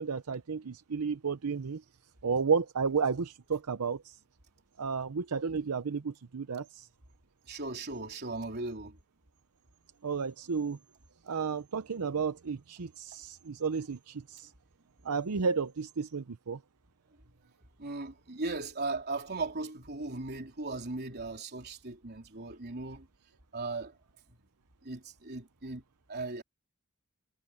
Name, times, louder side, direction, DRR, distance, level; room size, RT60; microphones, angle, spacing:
voice 1, 0.0-1.8 2.2-4.2 4.8-6.9 10.0-10.8 11.3-14.5 15.0-16.6, right 5 dB, 80° right, 0.7 m, -32 dB
voice 2, 7.5-9.0 17.8-23.1 23.5-23.9 24.8-25.8 26.1-26.4, right 3 dB, 50° right, 3.7 m, -37 dB
head